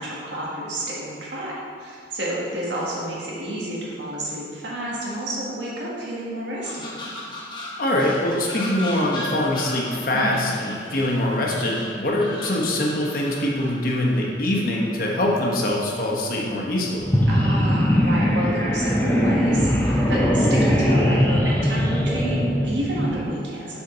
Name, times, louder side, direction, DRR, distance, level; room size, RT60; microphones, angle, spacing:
voice 1, 0.0-6.9 10.1-10.4 17.3-23.8, right 1 dB, 80° right, -5 dB, 1.7 m, -30 dB
sound 1, 6.6-16.4 16.8-17.9 18.2-18.8 19.4-19.9 20.5-20.9, left 1 dB, 25° left, 1.2 m, -38 dB
voice 2, 7.8-17.1, left 1 dB, 50° left, -2 dB, 1.1 m, -23 dB
sound 2, 17.0-23.2, equal, 10° left, 0.6 m, -20 dB
7.2 x 5.0 x 3.9 m, 2.2 s
head